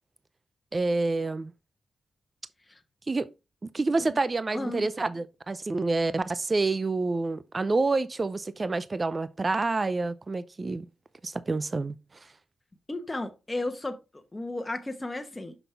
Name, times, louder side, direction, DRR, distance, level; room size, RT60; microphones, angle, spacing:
voice 1, 0.7-1.5 3.1-3.3 3.7-10.8 11.2-12.0, right 3 dB, 35° right, 0.4 m, -28 dB
voice 2, 4.5-4.9 12.9-15.5, left 2 dB, 20° left, 1.1 m, -34 dB
6.0 x 5.3 x 3.4 m
cardioid pair, 60°, 0 cm